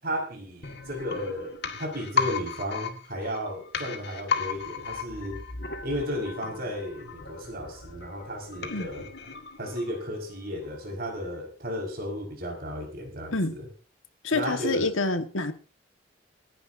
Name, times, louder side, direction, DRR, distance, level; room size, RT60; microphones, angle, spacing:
voice 1, 0.0-5.4 5.8-9.1 9.6-13.7 14.3-14.9, equal, 50° right, 2 dB, 5.2 m, -34 dB
sound 1, 0.6-10.3 10.6-10.7, left 5 dB, 55° left, 1.9 m, -35 dB
voice 2, 14.2-15.5, left 3 dB, 80° left, 8 dB, 1.6 m, -27 dB
28.0 x 10.5 x 2.7 m, 0.35 s
head